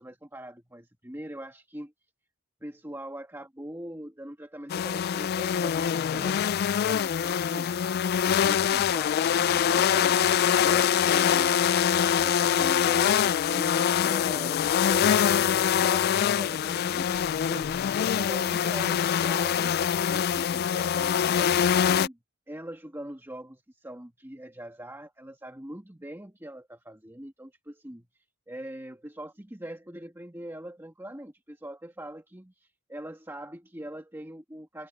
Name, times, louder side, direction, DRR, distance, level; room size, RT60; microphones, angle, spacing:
voice 1, 0.0-1.9 2.6-7.8 8.3-11.5 12.2-17.7 18.1-19.8 20.1-21.6 21.9-22.2 22.5-34.9, right 1 dB, 15° right, 1.8 m, -42 dB
sound 1, 4.7-22.1, left 8 dB, 50° left, 0.3 m, -24 dB
head